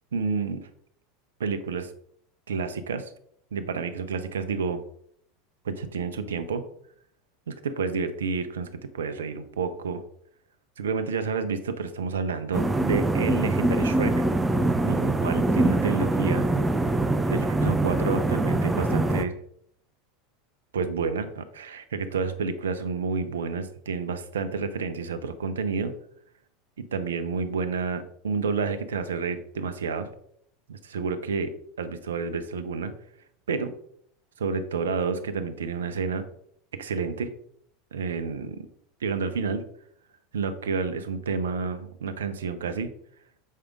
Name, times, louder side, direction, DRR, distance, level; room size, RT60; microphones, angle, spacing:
voice 1, 0.1-0.6 1.4-1.9 2.5-3.1 3.5-4.8 5.6-6.6 7.5-10.0 10.8-14.3 14.8-16.5 17.3-19.3 20.7-25.9 26.8-30.1 30.7-31.5 31.8-32.9 33.5-33.7 34.4-36.3 36.7-37.3 37.9-38.7 39.0-39.6 40.3-42.9, right 5 dB, 80° right, 10 dB, 0.7 m, -29 dB
sound 1, 12.5-19.2, right 2 dB, 10° right, 0.7 m, -24 dB
7.5 x 5.0 x 3.5 m, 0.68 s
hypercardioid pair, 85°, 0 cm